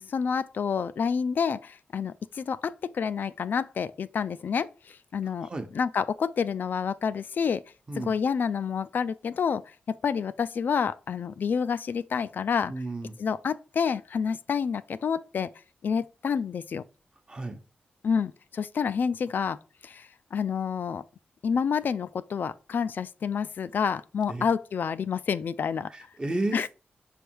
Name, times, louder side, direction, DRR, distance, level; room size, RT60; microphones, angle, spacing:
voice 1, 0.0-5.5 5.7-7.6 8.0-9.6 9.9-12.7 13.2-15.5 15.8-16.8 18.0-19.6 19.8-21.0 21.4-25.9 26.5-26.7, left 6 dB, 65° left, 0.3 m, -28 dB
voice 2, 12.7-13.2 17.3-17.6 24.3-24.5 25.9-26.7, right 2 dB, 25° right, 0.9 m, -32 dB
6.1 x 3.3 x 4.6 m
wide cardioid pair, 120°, 3 cm